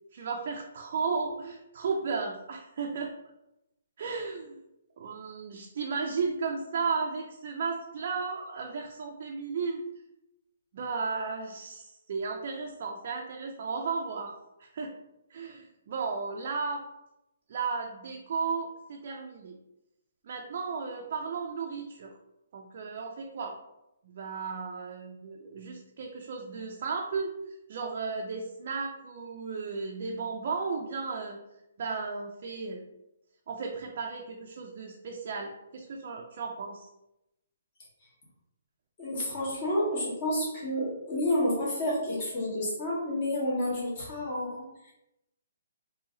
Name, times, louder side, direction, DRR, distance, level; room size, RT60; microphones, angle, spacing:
voice 1, 0.1-3.1 4.0-4.6 5.0-9.8 10.7-14.3 14.6-14.9 15.3-16.8 17.5-19.6 20.2-22.1 22.5-23.6 24.0-31.4 31.8-32.8 33.5-36.9, right 4 dB, 40° right, 0 dB, 0.4 m, -34 dB
voice 2, 39.0-44.9, left 1 dB, 25° left, -6 dB, 1.4 m, -30 dB
2.9 x 2.7 x 3.7 m, 0.89 s
hypercardioid pair, 170°, 0 cm